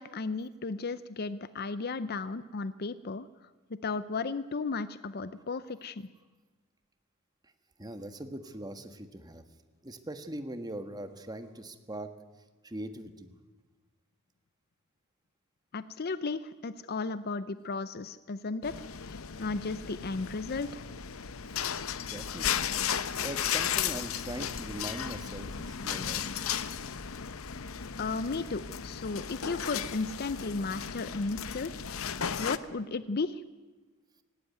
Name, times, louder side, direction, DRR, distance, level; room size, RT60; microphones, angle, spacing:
voice 1, 0.0-3.3 3.8-6.1 15.7-18.7 19.0-20.8 28.0-31.7 32.4-33.4, left 3 dB, 45° left, 14 dB, 0.6 m, -34 dB
voice 2, 7.8-9.4 9.8-12.1 12.6-13.3 22.0-22.7 23.2-26.5, right 1 dB, 20° right, 8 dB, 1.4 m, -41 dB
sound 1, 18.6-32.6, left 8 dB, 75° left, 0.8 m, -35 dB
18.0 x 17.5 x 9.4 m, 1.3 s
head